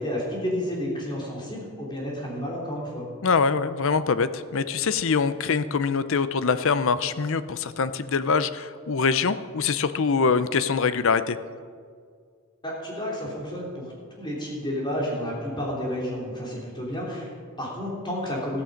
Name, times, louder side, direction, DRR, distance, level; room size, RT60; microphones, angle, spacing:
voice 1, 0.0-3.1 12.6-18.6, equal, 20° left, -4 dB, 3.7 m, -31 dB
voice 2, 3.2-11.4, left 5 dB, 60° left, 13 dB, 0.6 m, -24 dB
14.5 x 14.0 x 5.2 m, 2.1 s
head